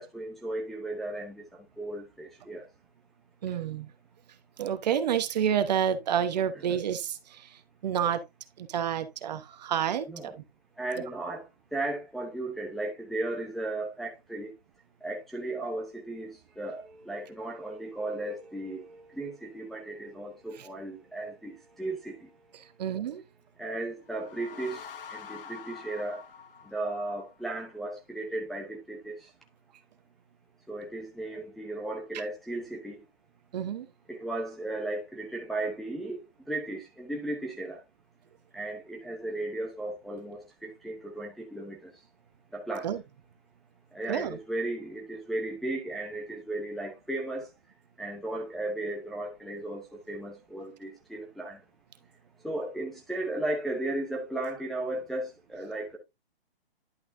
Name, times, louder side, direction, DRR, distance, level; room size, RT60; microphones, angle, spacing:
voice 1, 0.0-2.6 10.1-10.3 10.8-11.4 11.7-14.5 15.0-22.3 23.6-26.2 26.6-29.3 30.7-33.1 34.1-37.8 38.5-41.9 42.5-42.9 43.9-47.5 48.0-51.6 52.4-56.0, right 2 dB, ahead, 0.8 m, -35 dB
voice 2, 3.4-3.9 4.6-8.2 8.6-10.4 20.6-20.7 22.8-23.2 33.5-33.9 42.8-43.0 44.1-44.4, right 9 dB, 45° right, 1.1 m, -29 dB
sound 1, 24.0-27.5, left 7 dB, 60° left, 1.1 m, -46 dB
11.0 x 5.8 x 2.7 m
hypercardioid pair, 155°, 30 cm